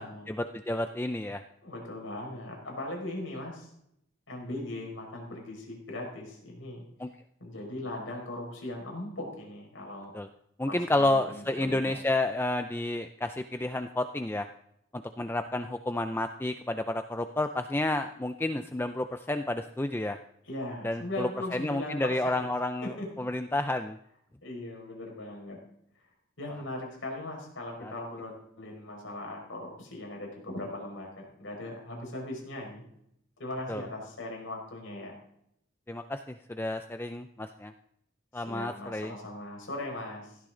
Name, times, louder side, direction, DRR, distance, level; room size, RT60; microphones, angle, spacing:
voice 1, 0.3-1.4 7.0-7.1 10.1-10.3 10.6-14.5 14.9-20.2 20.8-24.0 27.8-27.9 33.7-33.8 35.9-37.7 38.3-39.1, left 1 dB, 10° left, 8 dB, 0.4 m, -30 dB
voice 2, 1.6-3.7 4.3-6.8 7.4-10.1 10.7-11.9 20.4-22.5 22.8-23.1 24.4-25.6 26.4-32.9 33.4-35.1 38.4-40.4, left 1 dB, 70° left, 0 dB, 5.3 m, -39 dB
16.5 x 13.5 x 3.8 m, 0.73 s
head